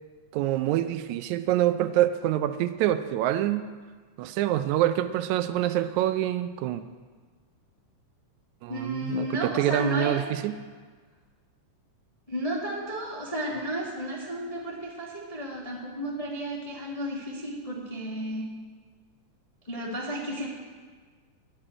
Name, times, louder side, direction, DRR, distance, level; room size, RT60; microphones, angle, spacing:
voice 1, 0.3-3.7 4.2-6.8 8.6-10.6, right 13 dB, 80° right, 11 dB, 1.7 m, -26 dB
voice 2, 8.7-10.2 12.3-18.5 19.7-20.5, equal, 20° left, -4 dB, 0.9 m, -32 dB
11.5 x 6.9 x 8.7 m, 1.5 s
omnidirectional pair, 3.7 m